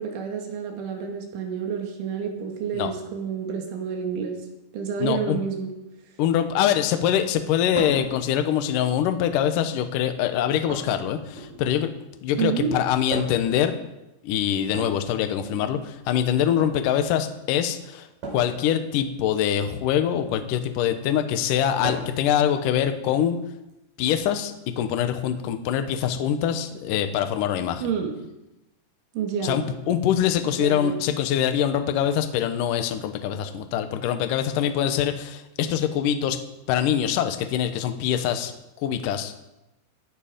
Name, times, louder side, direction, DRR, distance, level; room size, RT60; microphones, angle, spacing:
voice 1, 0.0-4.4 4.7-5.7 12.3-12.7 27.8-28.1 29.2-29.6 30.4-31.0, right 7 dB, 85° right, 2 dB, 4.5 m, -29 dB
voice 2, 5.0-5.4 6.2-11.9 12.2-13.8 14.2-23.4 24.0-27.8 29.4-36.4 36.7-38.5 38.8-39.3, left 9 dB, 85° left, 8 dB, 1.9 m, -24 dB
sound 1, 7.7-8.1 9.1-9.6 10.7-11.8 13.1-13.5 14.6-15.7 16.4-16.7 18.2-18.5 20.1-20.5 21.8-22.2 23.7-23.8 25.0-25.1, right 2 dB, 45° right, 6.2 m, -36 dB
18.5 x 11.5 x 5.2 m, 0.94 s
omnidirectional pair, 5.4 m